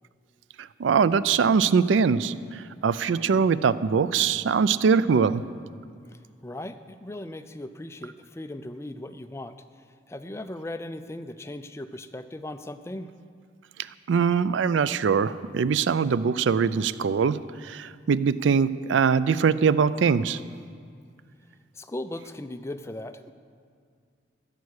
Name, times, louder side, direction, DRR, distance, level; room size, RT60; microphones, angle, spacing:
voice 1, 0.8-5.4 14.1-20.4, right 6 dB, 85° right, 16 dB, 0.4 m, -22 dB
voice 2, 6.1-9.6 10.1-13.1 21.7-23.3, left 1 dB, 15° left, 10 dB, 0.4 m, -38 dB
14.0 x 8.4 x 6.4 m, 2.1 s
head